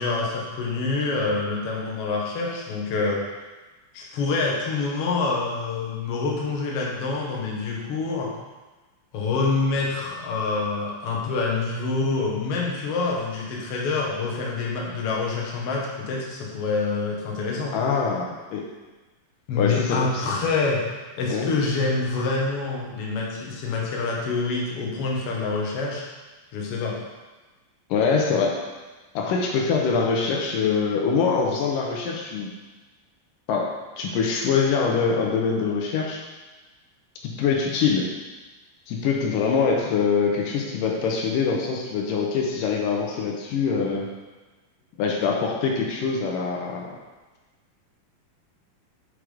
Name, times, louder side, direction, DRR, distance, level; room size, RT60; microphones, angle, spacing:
voice 1, 0.0-3.2 3.9-8.3 9.1-17.8 19.5-20.9 21.2-26.0 26.5-27.0, left 3 dB, 60° left, -2 dB, 1.7 m, -26 dB
voice 2, 17.7-18.6 19.6-20.2 21.3-21.5 27.9-28.6 29.2-32.5 33.5-36.2 37.2-38.1 38.9-44.1 45.0-47.0, left 5 dB, 80° left, 0 dB, 2.4 m, -24 dB
6.0 x 5.0 x 4.9 m, 1.2 s
omnidirectional pair, 3.9 m